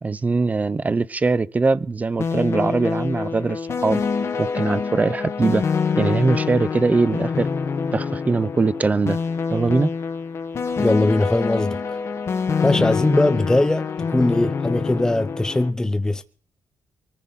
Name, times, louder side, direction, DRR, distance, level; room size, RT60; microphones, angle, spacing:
voice 1, 0.0-4.0 4.4-5.6 6.0-7.5 7.9-9.2 9.5-9.9 12.7-12.8, right 3 dB, 25° right, 0.7 m, -21 dB
sound 1, 2.2-15.7, left 5 dB, 45° left, 1.9 m, -26 dB
voice 2, 10.8-11.8 12.6-16.2, left 1 dB, 10° left, 0.9 m, -20 dB
23.5 x 14.5 x 4.2 m
cardioid pair, 135°, 7 cm